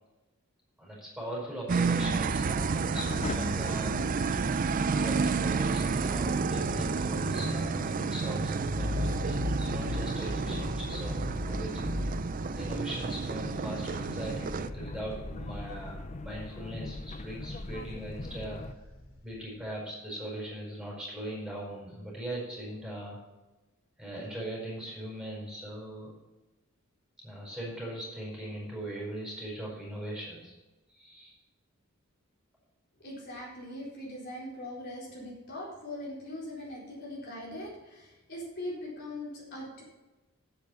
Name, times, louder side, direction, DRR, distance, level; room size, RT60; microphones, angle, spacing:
voice 1, 0.8-4.4 4.9-11.9 12.5-18.6 19.2-23.2 24.0-26.1 27.2-30.5 30.9-31.3, right 1 dB, 5° right, -5 dB, 4.7 m, -40 dB
sound 1, 1.7-14.7, right 4 dB, 40° right, 0.4 m, -30 dB
sound 2, 2.0-18.7, left 2 dB, 35° left, 0.6 m, -42 dB
sound 3, 8.3-16.5 16.9-19.5, left 2 dB, 90° left, 2.7 m, -39 dB
voice 2, 33.0-39.8, left 1 dB, 55° left, -4 dB, 4.3 m, -41 dB
10.5 x 8.0 x 5.7 m, 1.1 s
head